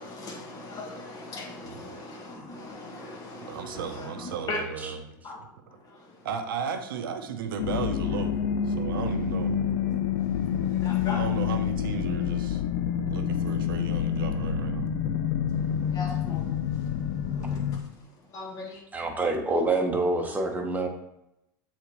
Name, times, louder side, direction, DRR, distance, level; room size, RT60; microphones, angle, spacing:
voice 1, 0.0-4.6 5.2-5.4 5.8-6.3 9.9-11.2 15.9-16.5 16.7-16.9 17.4-17.6 18.3-18.8, left 2 dB, 35° left, 2.1 m, -39 dB
voice 2, 3.5-5.0 5.4-5.5 6.2-8.4 8.7-9.6 11.1-12.6 13.1-14.9, right 7 dB, 85° right, 0.8 m, -35 dB
sound 1, 7.6-17.8, left 8 dB, 65° left, 0.6 m, -28 dB
voice 3, 18.9-20.9, right 2 dB, 15° right, 1.2 m, -26 dB
8.0 x 4.1 x 3.1 m
hypercardioid pair, 105°, 11 cm